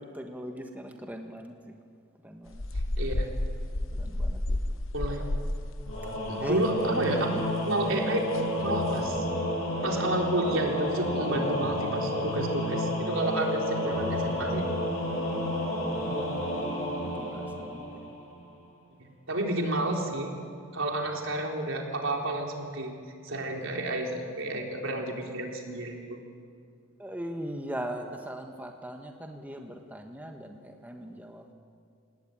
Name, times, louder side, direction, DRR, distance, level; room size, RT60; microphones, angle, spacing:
voice 1, 0.0-1.7 2.2-2.6 4.0-4.6 6.4-6.6 7.2-7.4 7.9-8.1 13.7-14.7 15.2-15.6 15.9-16.3 17.0-18.1 27.0-31.5, equal, 10° right, 3 dB, 1.4 m, -40 dB
sound 1, 2.5-7.1 7.4-7.5 7.9-8.0 8.3-8.5 9.0-9.2, left 1 dB, 70° left, 1.0 m, -32 dB
voice 2, 3.0-3.3 4.9-5.2 6.3-7.3 7.6-9.3 9.8-14.6 19.0-20.3 20.7-22.9 23.2-26.2, right 2 dB, 70° right, 1 dB, 3.8 m, -30 dB
Singing / Musical instrument, 5.9-18.3, left 1 dB, 90° left, 7.0 m, -31 dB
27.0 x 19.0 x 9.1 m, 2.2 s
head